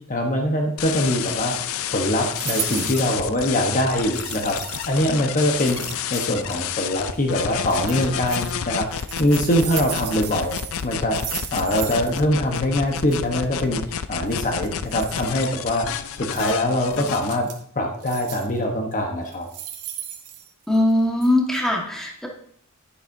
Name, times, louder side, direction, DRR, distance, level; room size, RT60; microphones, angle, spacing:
voice 1, 0.1-1.5 1.9-5.8 6.1-13.8 14.1-17.5 17.7-19.5, left 1 dB, 35° left, 2 dB, 1.0 m, -23 dB
sound 1, 0.8-17.4, left 8 dB, 65° left, 0.5 m, -30 dB
sound 2, 2.3-3.1 4.1-5.0 5.5-6.5 7.6-8.5 8.9-12.2 12.5-12.6 12.9-13.2 14.3-15.3 16.3-16.5 16.9-17.6 18.0-18.6 19.2-20.9 21.2-21.3, right 10 dB, 80° right, 1.2 m, -35 dB
voice 2, 20.7-22.3, left 1 dB, ahead, -1 dB, 1.5 m, -20 dB
10.5 x 10.0 x 2.7 m, 0.63 s
head